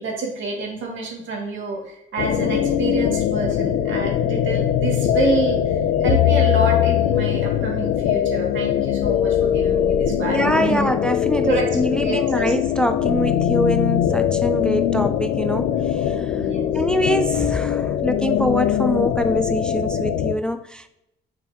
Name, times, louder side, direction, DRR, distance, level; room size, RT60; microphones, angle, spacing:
voice 1, 0.0-5.7 6.0-10.9 11.4-12.5 16.3-16.7, right 3 dB, 75° right, 2.2 m, -27 dB
sound 1, 2.2-20.3, left 10 dB, 90° left, 0.5 m, -21 dB
voice 2, 10.3-16.4 16.7-20.9, equal, 5° left, 0.4 m, -24 dB
6.8 x 5.8 x 2.9 m
cardioid pair, 90°, 20 cm